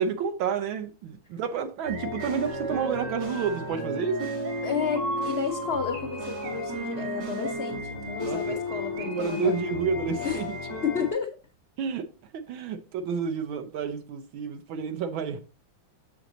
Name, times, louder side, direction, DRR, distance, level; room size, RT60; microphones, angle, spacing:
voice 1, 0.0-4.3 8.2-8.6 9.0-10.6 11.8-12.1 12.3-15.4, right 6 dB, 80° right, 1.7 m, -30 dB
sound 1, 1.8-11.1, left 1 dB, 65° right, 3.7 m, -33 dB
voice 2, 4.6-9.5 10.2-10.4 10.8-11.3, left 6 dB, 75° left, 0.5 m, -31 dB
7.3 x 6.4 x 3.9 m
omnidirectional pair, 2.1 m